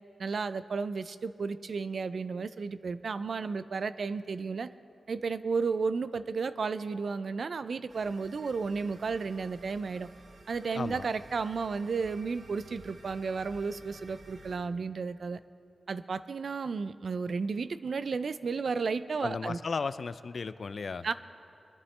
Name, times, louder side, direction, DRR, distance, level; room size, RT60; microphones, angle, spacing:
voice 1, 0.2-4.7 5.1-10.1 10.5-15.4 15.9-19.6 21.0-21.1, right 4 dB, 60° right, 14 dB, 0.4 m, -33 dB
sound 1, 7.9-14.6, right 2 dB, 80° right, 1.2 m, -54 dB
voice 2, 10.7-11.1 19.2-21.1, left 4 dB, 50° left, 14 dB, 0.3 m, -35 dB
22.5 x 11.0 x 3.3 m, 2.6 s
wide cardioid pair, 140°, 0 cm